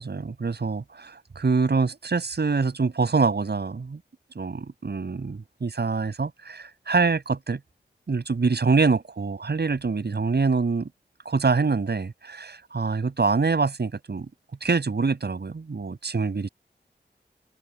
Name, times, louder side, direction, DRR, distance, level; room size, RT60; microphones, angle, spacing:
voice 1, 0.0-4.0 4.3-7.6 8.1-10.9 11.2-14.3 14.6-16.5, right 4 dB, 70° right, 7.9 m, -25 dB
wide cardioid pair, 65°, 18 cm